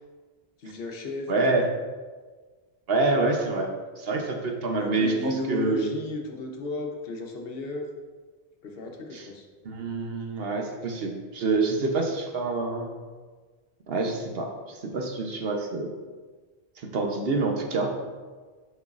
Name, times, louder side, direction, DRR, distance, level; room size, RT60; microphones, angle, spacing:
voice 1, 0.6-1.6 4.7-7.9 8.6-9.4, left 2 dB, 60° left, 2 dB, 0.9 m, -34 dB
voice 2, 1.3-1.6 2.9-3.7 4.0-5.9 9.1-9.3 9.6-12.9 13.9-15.9 16.8-17.9, right 3 dB, 65° right, 2 dB, 1.0 m, -27 dB
7.8 x 5.3 x 2.4 m, 1.4 s
omnidirectional pair, 1.1 m